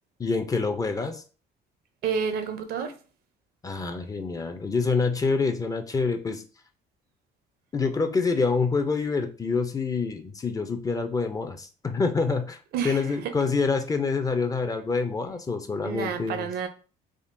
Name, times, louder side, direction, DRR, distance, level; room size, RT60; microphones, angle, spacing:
voice 1, 0.2-1.2 3.6-6.4 7.7-12.6 12.8-16.5, left 4 dB, 20° left, 0.4 m, -26 dB
voice 2, 2.0-3.0 12.7-13.3 15.8-16.7, right 6 dB, 70° right, 0.6 m, -30 dB
3.5 x 2.3 x 2.6 m
cardioid pair, 110°, 17 cm